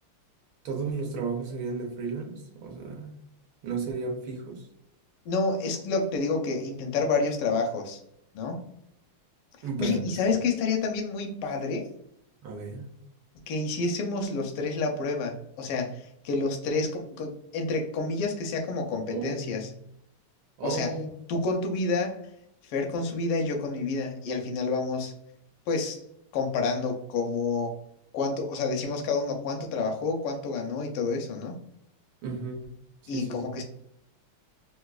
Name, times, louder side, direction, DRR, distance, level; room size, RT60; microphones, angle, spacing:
voice 1, 0.6-3.1 3.6-4.7 9.6-10.0 12.4-12.9 19.1-19.7 20.6-21.1 32.2-32.7 33.0-33.5, right 4 dB, 75° right, 1 dB, 1.4 m, -34 dB
voice 2, 5.3-8.0 8.3-8.6 9.8-11.9 13.5-19.7 20.6-20.9 21.3-22.2 22.6-25.1 25.7-26.0 26.3-27.7 28.1-31.6 33.1-33.6, left 3 dB, 90° left, 2 dB, 1.5 m, -29 dB
3.9 x 2.5 x 2.2 m, 0.76 s
omnidirectional pair, 2.4 m